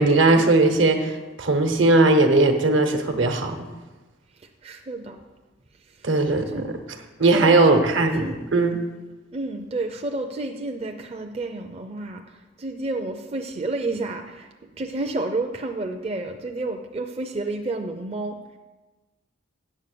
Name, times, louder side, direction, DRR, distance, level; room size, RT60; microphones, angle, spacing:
voice 1, 0.0-3.7 6.0-6.8 7.2-8.8, right 2 dB, 75° right, 5 dB, 1.1 m, -19 dB
voice 2, 4.6-5.2 6.5-6.7 7.3-7.9 8.2-8.4 9.3-12.2 12.6-14.5 14.8-18.4, right 2 dB, 30° right, 3 dB, 0.5 m, -30 dB
8.3 x 7.1 x 6.8 m, 1.2 s
head